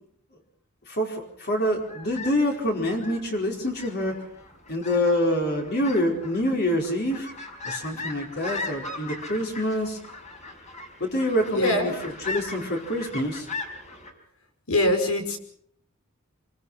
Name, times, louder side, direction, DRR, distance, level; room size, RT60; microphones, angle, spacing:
voice 1, 0.9-4.2 4.7-7.3 7.6-10.0 11.0-11.9 12.2-13.5, left 1 dB, 50° left, 1 dB, 4.7 m, -26 dB
sound 1, 1.7-14.1, left 3 dB, 35° left, 4.7 m, -39 dB
voice 2, 11.5-12.0 14.7-15.4, left 1 dB, 85° left, 6 dB, 5.4 m, -23 dB
26.5 x 24.0 x 5.7 m, 0.64 s
head